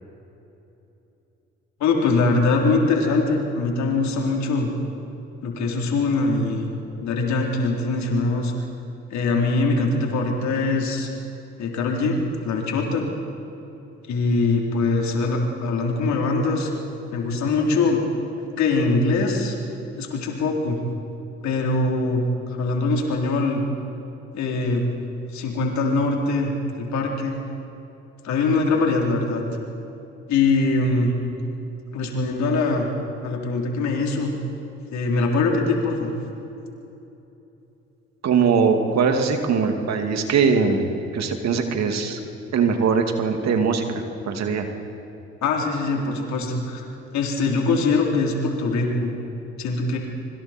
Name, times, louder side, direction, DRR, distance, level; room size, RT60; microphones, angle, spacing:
voice 1, 1.8-4.7 5.4-6.7 7.0-8.5 9.1-11.1 11.6-12.2 12.4-13.1 14.1-16.7 17.1-18.0 18.6-19.6 20.0-20.8 21.4-22.2 22.5-23.6 24.3-24.9 25.3-26.5 26.8-27.3 28.2-29.4 30.3-31.2 31.9-32.9 33.2-34.3 34.9-36.1 45.4-46.8 47.1-49.1 49.6-50.0, left 3 dB, 70° left, 0 dB, 3.8 m, -22 dB
voice 2, 38.2-42.2 42.5-44.7, right 5 dB, 65° right, 5 dB, 2.5 m, -21 dB
25.5 x 24.0 x 4.5 m, 2.9 s
supercardioid pair, 60°, 29 cm